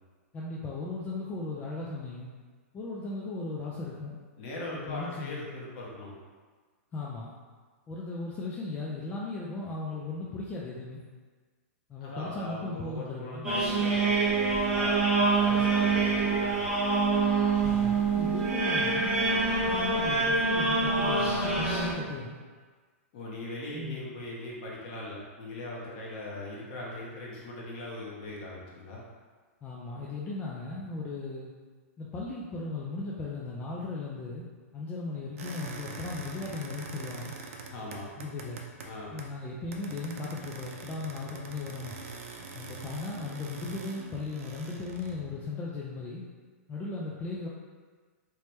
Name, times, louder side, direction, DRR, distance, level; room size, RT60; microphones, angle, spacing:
voice 1, 0.3-2.3 2.7-4.2 4.7-5.4 6.9-7.3 7.9-11.0 11.9-13.5 17.6-19.1 19.6-22.4 23.7-24.1 29.6-31.5 32.0-34.4 34.7-37.3 38.2-38.6 39.1-41.9 42.5-46.2 46.7-47.5, left 3 dB, 15° left, -4 dB, 0.3 m, -37 dB
voice 2, 4.4-6.1 12.0-16.7 23.1-29.0 37.7-38.1 38.8-39.1, left 1 dB, 45° left, -4 dB, 1.0 m, -40 dB
sound 1, 13.4-21.9, right 3 dB, 10° right, 0.8 m, -26 dB
sound 2, 35.4-39.4 39.7-45.3, right 4 dB, 70° right, 0.5 m, -44 dB
3.2 x 3.0 x 3.1 m, 1.5 s
hypercardioid pair, 145°, 8 cm